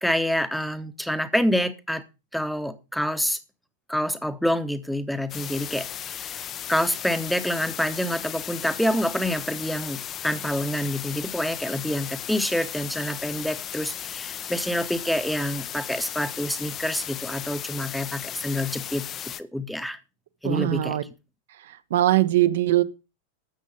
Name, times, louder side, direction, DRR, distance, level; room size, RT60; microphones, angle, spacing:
voice 1, 0.0-2.0 2.3-3.4 3.9-6.4 6.7-19.1 19.4-20.0 20.4-21.0, equal, ahead, 1.1 m, -27 dB
sound 1, 5.3-19.4, left 10 dB, 30° left, 0.7 m, -36 dB
voice 2, 20.4-21.0 21.6-22.8, right 14 dB, 55° right, 1.0 m, -21 dB
13.0 x 7.4 x 5.2 m
figure-of-eight pair, 90°, 0 cm